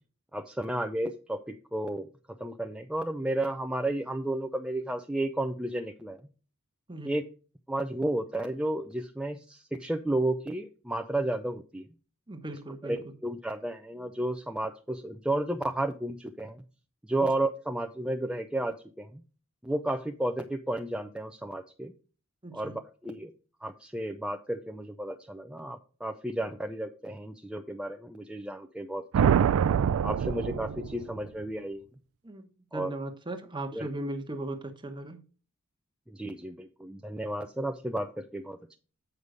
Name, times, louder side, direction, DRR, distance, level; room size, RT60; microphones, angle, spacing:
voice 1, 0.3-2.1 2.4-6.2 7.0-7.2 7.7-11.9 12.8-16.6 17.0-19.2 19.6-21.9 22.5-23.3 23.6-29.6 30.0-31.8 32.7-32.9 33.7-33.9 36.1-38.8, right 1 dB, 5° right, 0.5 m, -32 dB
voice 2, 12.3-13.0 17.2-17.3 22.4-22.7 32.2-35.2, right 1 dB, 20° right, 1.1 m, -38 dB
sound 1, 29.1-31.3, right 8 dB, 75° right, 0.3 m, -25 dB
8.1 x 5.4 x 5.0 m
head